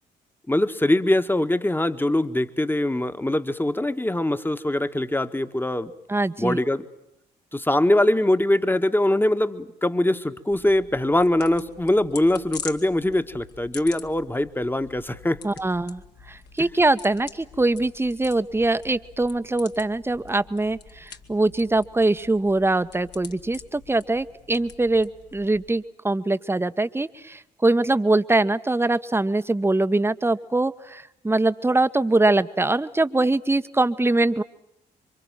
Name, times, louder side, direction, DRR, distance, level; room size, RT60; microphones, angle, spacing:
voice 1, 0.5-5.9 6.4-6.8 7.5-15.4 16.6-16.7, left 1 dB, 10° left, 10 dB, 1.7 m, -22 dB
voice 2, 6.1-6.6 15.4-16.0 16.3-34.4, right 2 dB, 10° right, 12 dB, 1.2 m, -23 dB
sound 1, 10.5-25.7, left 6 dB, 55° left, 2.2 m, -45 dB
27.5 x 25.0 x 7.5 m, 0.79 s
figure-of-eight pair, 40°, 21 cm